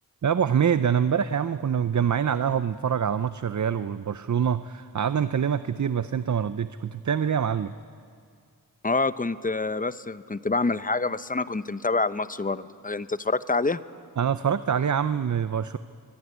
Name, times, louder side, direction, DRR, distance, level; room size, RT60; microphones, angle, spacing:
voice 1, 0.2-7.7 14.2-15.8, right 8 dB, 50° right, 13 dB, 0.6 m, -25 dB
voice 2, 8.8-13.8, left 3 dB, 20° left, 13 dB, 0.7 m, -27 dB
22.5 x 22.5 x 9.5 m, 2.2 s
wide cardioid pair, 75°, 38 cm